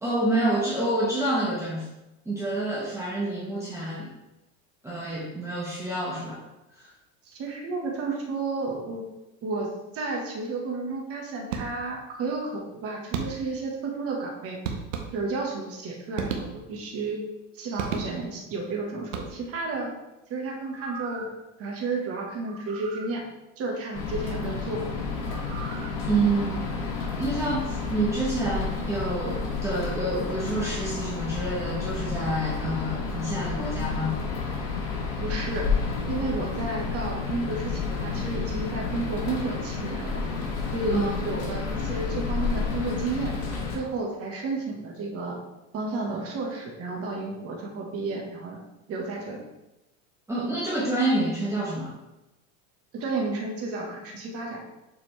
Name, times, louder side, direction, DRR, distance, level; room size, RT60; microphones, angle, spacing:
voice 1, 0.0-1.9 2.2-4.1 4.8-6.4 6.7-6.9 26.1-26.7 27.2-34.1 40.9-41.2 50.3-51.9, right 2 dB, 10° right, -6 dB, 1.1 m, -28 dB
voice 2, 7.3-9.1 9.4-14.6 15.1-17.2 17.5-19.9 20.3-21.3 21.6-23.2 23.6-24.9 35.2-35.7 36.1-40.3 40.7-43.4 43.7-45.4 45.7-48.6 48.9-49.5 52.9-54.7, right 3 dB, 40° right, 0 dB, 1.5 m, -32 dB
sound 1, 11.5-12.1 13.1-13.7 14.6-15.5 16.1-16.9 17.8-18.5 19.0-19.7, right 6 dB, 85° right, 1.1 m, -34 dB
sound 2, 20.6-21.4 22.5-23.1 25.2-25.9 26.4-26.5, right 7 dB, 60° right, 1.0 m, -42 dB
sound 3, 23.9-43.8, left 4 dB, 65° left, 2.2 m, -30 dB
7.2 x 4.2 x 3.3 m, 0.97 s
supercardioid pair, 130°, 36 cm